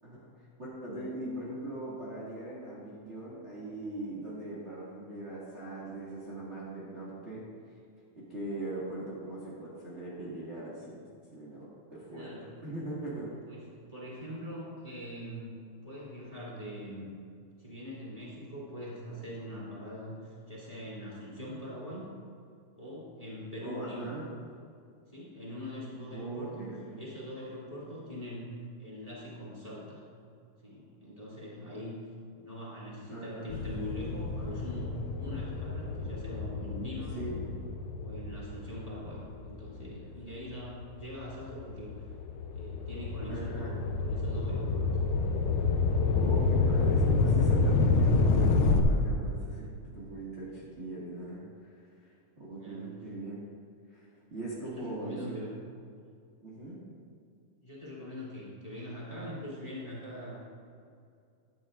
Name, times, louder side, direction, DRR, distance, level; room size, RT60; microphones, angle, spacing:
voice 1, 0.0-7.4 8.1-11.0 11.3-12.3 12.6-13.4 19.1-19.2 23.6-24.3 26.1-27.0 33.1-33.5 37.1-37.4 43.3-43.7 46.1-53.4 53.9-54.0 54.3-55.4 56.4-56.8, right 2 dB, 30° right, -8 dB, 1.5 m, -40 dB
voice 2, 12.1-12.6 13.5-15.5 15.8-17.1 17.6-22.1 22.8-24.1 25.1-26.7 27.0-28.5 28.8-30.0 30.6-32.0 32.3-37.4 38.0-42.1 42.5-44.9 52.6-53.0 54.6-55.5 57.6-60.4, equal, 10° left, -7 dB, 2.3 m, -42 dB
sound 1, 33.5-40.2 40.8-48.8, left 3 dB, 75° left, 1.9 m, -28 dB
15.0 x 11.0 x 2.5 m, 2.4 s
omnidirectional pair, 3.9 m